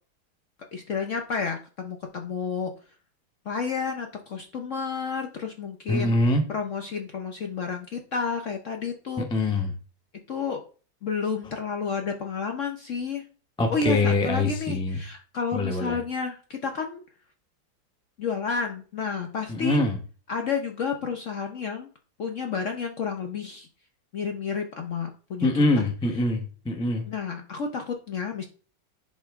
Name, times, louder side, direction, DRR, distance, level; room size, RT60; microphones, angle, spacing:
voice 1, 0.7-2.7 3.5-6.1 6.5-9.5 10.3-10.6 11.0-13.2 13.7-17.0 18.2-19.8 20.3-21.9 22.2-23.7 24.1-25.5 25.8-25.9 27.1-28.4, left 5 dB, 60° left, 4 dB, 0.8 m, -31 dB
voice 2, 5.9-6.4 9.2-9.7 13.6-15.0 15.5-16.0 19.5-20.0 25.4-27.1, left 2 dB, 5° left, 4 dB, 0.4 m, -24 dB
10.5 x 4.2 x 3.6 m, 0.39 s
omnidirectional pair, 2.1 m